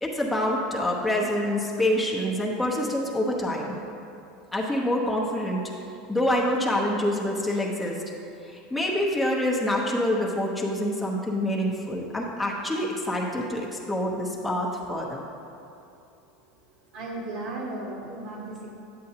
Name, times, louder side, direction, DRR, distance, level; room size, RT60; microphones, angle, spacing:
voice 1, 0.0-3.8 4.5-5.6 6.1-8.0 8.4-15.2, left 1 dB, 5° left, -3 dB, 1.0 m, -26 dB
voice 2, 16.9-18.7, right 2 dB, 70° right, -5 dB, 1.4 m, -35 dB
8.3 x 7.7 x 2.9 m, 2.6 s
supercardioid pair, 115°, 0 cm